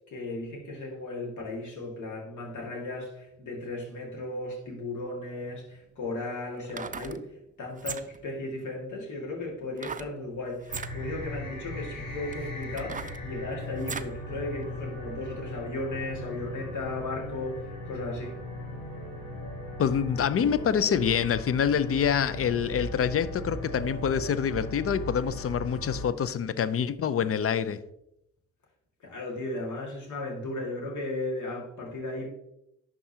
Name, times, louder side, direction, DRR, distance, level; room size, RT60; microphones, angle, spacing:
voice 1, 0.1-18.4 29.0-32.3, left 2 dB, 60° left, 2.1 m, -36 dB
sound 1, 5.4-5.5 6.6-7.2 7.7-8.3 9.8-10.1 10.6-10.9 11.7-11.8 12.3-14.2 14.6-14.7, right 6 dB, 25° right, 0.5 m, -38 dB
sound 2, 10.7-26.0, equal, 80° left, 2.6 m, -38 dB
voice 2, 19.8-27.8, left 8 dB, 45° left, 0.5 m, -26 dB
11.0 x 3.7 x 2.8 m
hypercardioid pair, 40°, 34 cm